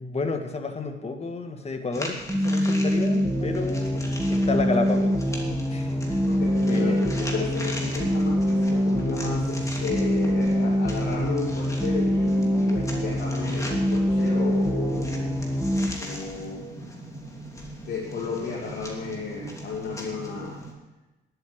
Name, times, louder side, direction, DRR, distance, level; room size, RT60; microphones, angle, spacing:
voice 1, 0.0-5.2 5.7-6.2 6.6-7.2, left 3 dB, 30° left, 5 dB, 1.6 m, -31 dB
sound 1, 1.9-20.7, equal, 15° left, 2.8 m, -39 dB
sound 2, 2.3-15.9, equal, 5° right, 2.0 m, -24 dB
voice 2, 6.3-15.3 16.0-16.7 17.8-20.6, left 4 dB, 55° left, -4 dB, 2.8 m, -33 dB
10.5 x 8.2 x 7.8 m, 1.1 s
cardioid pair, 90°, 20 cm